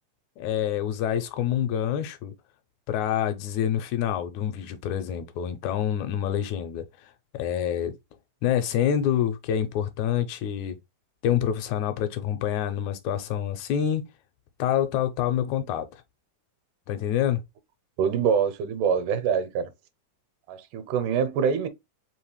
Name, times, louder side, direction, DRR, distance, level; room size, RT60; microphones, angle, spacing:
voice 1, 0.4-2.3 2.9-6.9 7.3-7.9 8.4-10.8 11.2-14.0 14.6-15.9 16.9-17.4, left 10 dB, 80° left, 1.9 m, -27 dB
voice 2, 18.0-19.7 20.5-21.7, right 7 dB, 85° right, 2.2 m, -25 dB
4.9 x 2.9 x 3.1 m
omnidirectional pair, 3.6 m